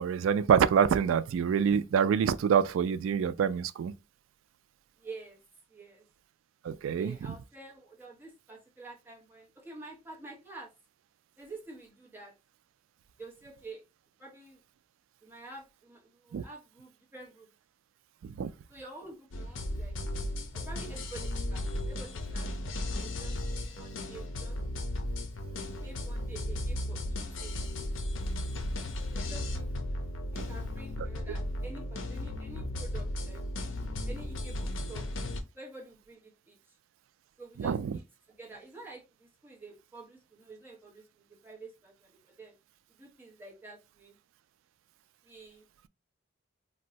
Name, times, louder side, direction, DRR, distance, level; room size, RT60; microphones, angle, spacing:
voice 1, 0.0-3.9 6.6-7.1 16.3-16.4 18.4-18.5 37.6-38.0, right 7 dB, 80° right, 0.3 m, -26 dB
voice 2, 5.0-5.4 5.7-6.1 6.9-10.7 11.4-12.3 13.2-13.8 14.2-14.6 15.2-17.5 18.7-20.0 20.5-22.5 23.0-24.6 25.8-27.6 29.1-29.7 30.3-33.4 34.0-35.1 35.5-36.6 37.4-42.5 42.9-44.2 45.2-45.7, right 3 dB, 10° right, 0.8 m, -48 dB
sound 1, 19.3-35.4, left 1 dB, 70° left, 0.5 m, -35 dB
2.6 x 2.1 x 3.8 m
head